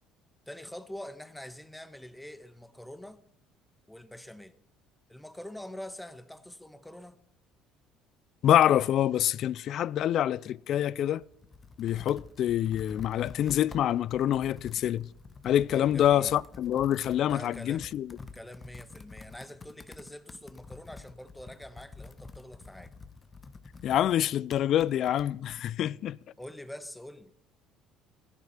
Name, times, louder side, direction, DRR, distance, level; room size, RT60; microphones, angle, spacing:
voice 1, 0.5-3.2 3.9-4.5 5.1-7.2 15.7-16.4 17.2-17.9 18.3-22.9 26.4-27.3, left 1 dB, 5° left, 1.4 m, -45 dB
voice 2, 8.4-11.2 11.8-15.1 15.4-18.2 23.8-26.2, left 11 dB, 60° left, 0.5 m, -26 dB
Computer keyboard, 11.2-25.6, left 4 dB, 30° left, 1.4 m, -49 dB
16.5 x 11.0 x 5.7 m
supercardioid pair, 75°, 0 cm